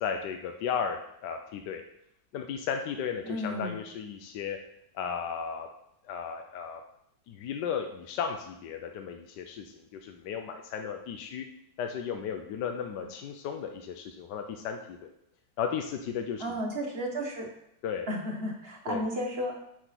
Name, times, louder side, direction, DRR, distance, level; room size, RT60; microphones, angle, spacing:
voice 1, 0.0-1.8 2.3-4.6 4.9-5.7 6.0-6.8 7.3-11.5 11.8-15.1 15.6-16.6 17.8-18.1 18.9-19.0, left 7 dB, 70° left, 5 dB, 1.2 m, -35 dB
voice 2, 3.2-3.8 16.4-17.5 18.1-19.6, equal, 35° right, 0 dB, 1.4 m, -33 dB
8.0 x 5.0 x 5.9 m, 0.78 s
omnidirectional pair, 2.1 m